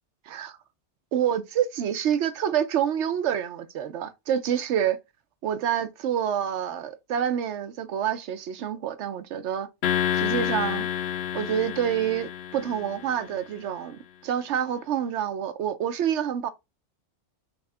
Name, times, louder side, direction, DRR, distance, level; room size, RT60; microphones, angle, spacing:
voice 1, 0.3-0.6 1.1-5.0 5.4-9.7 10.1-10.9 11.3-16.5, right 9 dB, 80° right, 0.9 m, -27 dB
sound 1, 9.8-13.3, left 9 dB, 65° left, 0.8 m, -29 dB
3.6 x 3.5 x 3.3 m
omnidirectional pair, 1.2 m